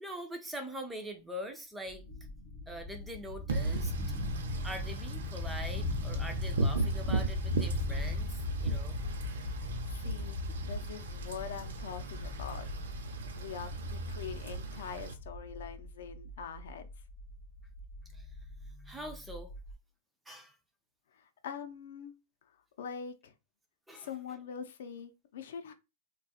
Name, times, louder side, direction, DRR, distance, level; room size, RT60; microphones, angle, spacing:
voice 1, 0.0-2.0 2.7-3.9 4.6-9.0 18.1-18.3 18.9-19.5 20.3-20.6 23.9-24.1, equal, 5° right, 0.3 m, -43 dB
sound 1, 1.9-19.7, left 2 dB, 30° left, 0.7 m, -38 dB
Wind / Rain, 3.5-15.1, right 3 dB, 85° right, 0.6 m, -38 dB
voice 2, 9.8-12.7 13.3-16.9 21.1-22.1 22.4-23.3 23.9-25.7, left 7 dB, 70° left, 0.5 m, -44 dB
2.4 x 2.3 x 4.0 m
supercardioid pair, 175°, 0 cm